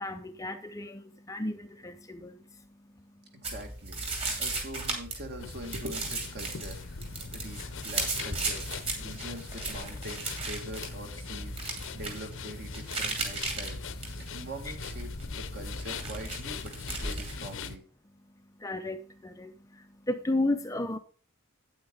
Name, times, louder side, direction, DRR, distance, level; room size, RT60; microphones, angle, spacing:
voice 1, 0.0-2.4 18.6-19.5 20.1-21.0, left 2 dB, 15° left, 0.5 m, -33 dB
voice 2, 3.3-4.1 4.4-7.0 7.3-8.6 9.0-11.6 11.9-16.7 17.0-17.8, right 1 dB, 50° right, 2.0 m, -43 dB
sound 1, 3.4-17.5, right 3 dB, 25° right, 2.5 m, -37 dB
sound 2, 5.4-17.8, left 5 dB, 60° left, 0.7 m, -41 dB
8.9 x 8.7 x 3.8 m
head